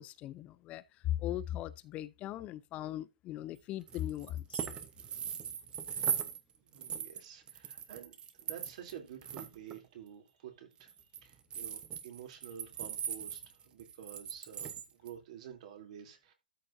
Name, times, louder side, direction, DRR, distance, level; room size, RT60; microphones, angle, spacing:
voice 1, 0.0-4.6, left 13 dB, 25° left, 0.7 m, -39 dB
sound 1, 3.9-6.4 6.7-8.9 9.2-9.8 10.8-15.1, right 8 dB, 20° right, 1.1 m, -39 dB
voice 2, 6.6-8.1 8.4-10.9 11.2-16.3, right 9 dB, 50° right, 3.3 m, -50 dB
13.0 x 6.5 x 2.7 m
figure-of-eight pair, 110°, 5 cm